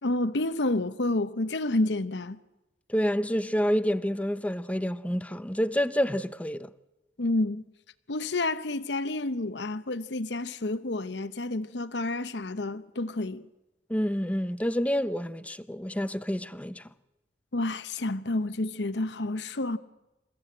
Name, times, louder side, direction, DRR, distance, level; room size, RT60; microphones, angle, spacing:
voice 1, 0.0-2.4 7.2-7.6 8.1-13.5 17.5-19.8, left 2 dB, 75° left, 0.9 m, -29 dB
voice 2, 2.9-6.7 13.9-16.8, equal, 10° left, 0.8 m, -28 dB
28.0 x 15.0 x 8.9 m
head